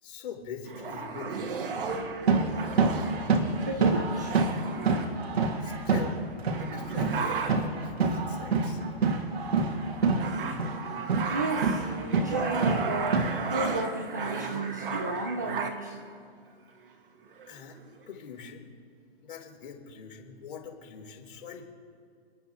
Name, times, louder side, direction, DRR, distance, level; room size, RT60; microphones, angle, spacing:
voice 1, 0.0-1.5 5.6-6.2 6.6-8.8 9.6-9.7 17.5-17.8 18.1-18.7 19.2-21.7, left 7 dB, 55° left, 0 dB, 3.5 m, -43 dB
sound 1, 0.7-5.7 6.2-6.3 6.5-7.8 8.5-8.9 9.3-16.0 16.8-16.9 17.3-18.0, right 5 dB, 60° right, 1.7 m, -35 dB
sound 2, 1.9-6.2 6.4-10.3 10.6-13.6, right 4 dB, 75° right, 2.2 m, -27 dB
voice 2, 3.7-4.4 11.3-11.9 12.2-16.0, right 2 dB, 20° right, 1 dB, 0.4 m, -33 dB
30.0 x 10.5 x 3.0 m, 2.3 s
hypercardioid pair, 175°, 31 cm